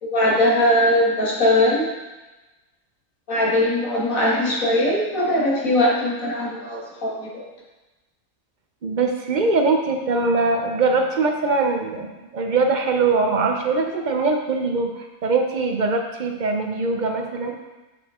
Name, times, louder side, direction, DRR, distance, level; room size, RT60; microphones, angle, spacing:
voice 1, 0.0-1.9 3.3-7.4, left 1 dB, 70° left, -4 dB, 2.0 m, -20 dB
voice 2, 8.8-17.5, right 3 dB, 50° right, 3 dB, 0.6 m, -22 dB
7.8 x 4.8 x 3.6 m, 1.1 s
omnidirectional pair, 1.5 m